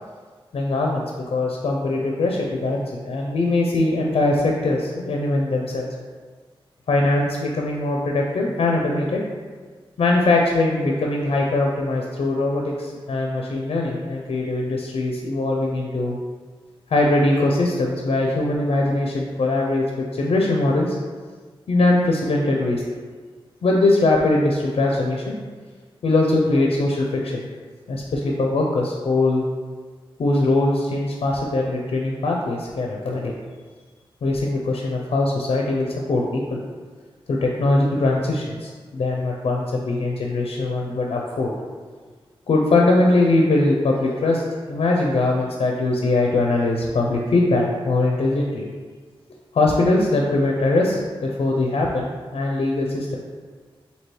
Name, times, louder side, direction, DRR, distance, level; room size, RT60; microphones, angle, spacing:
voice 1, 0.5-5.9 6.9-9.2 10.0-16.2 16.9-21.0 21.7-22.8 23.6-25.4 26.0-27.4 27.9-29.4 30.2-33.3 34.2-36.6 37.3-41.5 42.5-44.4 44.7-48.7 49.5-53.2, left 2 dB, 75° left, -1 dB, 0.5 m, -21 dB
3.0 x 2.7 x 4.5 m, 1.5 s
wide cardioid pair, 70°, 10 cm